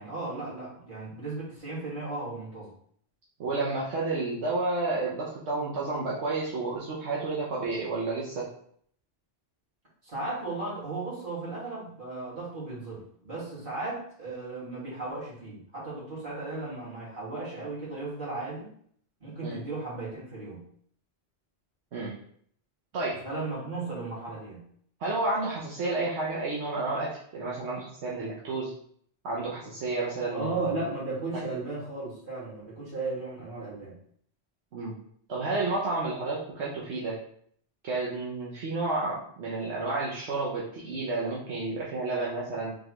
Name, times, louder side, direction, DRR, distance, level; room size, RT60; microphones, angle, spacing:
voice 1, 0.0-2.7 10.0-18.7 19.2-20.6 23.2-24.6 30.3-34.0, right 3 dB, 50° right, -8 dB, 2.0 m, -35 dB
voice 2, 3.4-8.5 19.4-19.6 21.9-22.1 22.9-23.2 25.0-28.7 29.2-30.8 34.7-34.9 35.3-37.2 37.8-42.7, right 3 dB, 80° right, -5 dB, 1.1 m, -31 dB
4.2 x 3.2 x 3.0 m, 0.63 s
omnidirectional pair, 1.1 m